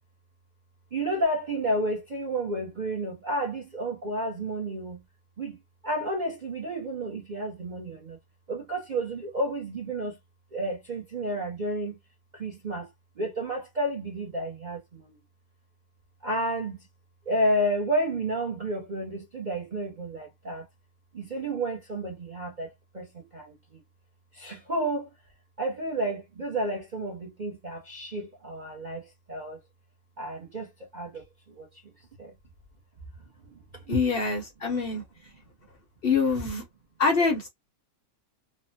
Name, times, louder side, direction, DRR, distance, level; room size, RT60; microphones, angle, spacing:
voice 1, 0.9-5.0 5.4-5.6 5.8-8.2 8.5-10.2 10.5-12.0 12.3-12.9 13.2-15.2 16.2-16.9 17.3-20.7 21.1-23.8 24.3-25.1 25.6-29.6 30.2-31.7 32.2-32.3 33.5-34.0, right 1 dB, 40° right, 0.6 m, -31 dB
voice 2, 33.9-35.0 36.0-36.6 37.0-37.5, left 4 dB, 50° left, 0.7 m, -25 dB
3.1 x 2.1 x 2.6 m
omnidirectional pair, 1.7 m